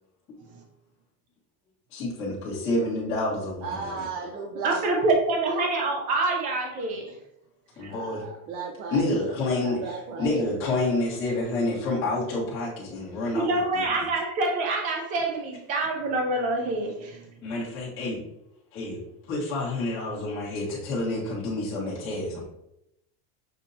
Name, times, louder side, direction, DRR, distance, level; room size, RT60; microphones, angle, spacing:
voice 1, 1.9-4.1 7.8-8.2 8.9-9.8 10.2-13.5 13.7-14.1 17.4-18.2 18.7-19.0 19.3-22.4, left 2 dB, 25° left, -8 dB, 1.5 m, -28 dB
voice 2, 3.6-4.8 7.9-10.5, right 4 dB, 65° right, 0 dB, 0.8 m, -35 dB
voice 3, 4.6-7.0 7.8-7.9 13.3-17.3, right 2 dB, 20° right, 1 dB, 0.3 m, -26 dB
6.4 x 2.7 x 2.7 m, 0.82 s
cardioid pair, 170°, 44 cm